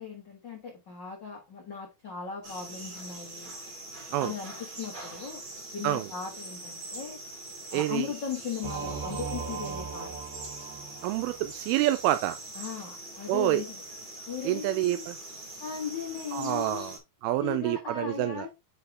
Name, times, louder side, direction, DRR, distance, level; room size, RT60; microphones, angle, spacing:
voice 1, 0.0-3.5 4.2-5.4 5.7-7.2 7.7-10.1 12.5-13.8 14.3-15.1 15.6-16.9 17.4-18.5, left 6 dB, 70° left, 1.0 m, -37 dB
sound 1, 2.4-17.0, right 2 dB, 35° right, 2.0 m, -43 dB
voice 2, 7.7-8.1 11.0-12.4 13.3-13.6 14.5-15.2 16.3-17.0 17.2-18.5, right 15 dB, 90° right, 2.5 m, -27 dB
Singing / Musical instrument, 8.6-11.5, right 6 dB, 65° right, 2.1 m, -38 dB
6.6 x 4.7 x 3.5 m
omnidirectional pair, 4.3 m